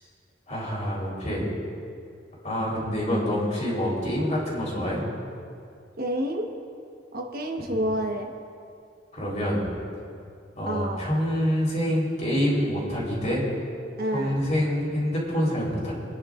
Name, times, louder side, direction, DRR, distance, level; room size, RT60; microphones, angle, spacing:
voice 1, 0.5-1.5 2.4-5.0 7.6-7.8 9.1-9.7 10.6-13.5 14.1-15.9, equal, 40° left, -5 dB, 3.8 m, -26 dB
voice 2, 6.0-6.5 7.1-8.3 10.7-11.0 14.0-14.4, right 1 dB, 55° right, 1 dB, 1.2 m, -28 dB
29.5 x 10.5 x 2.5 m, 2.4 s
head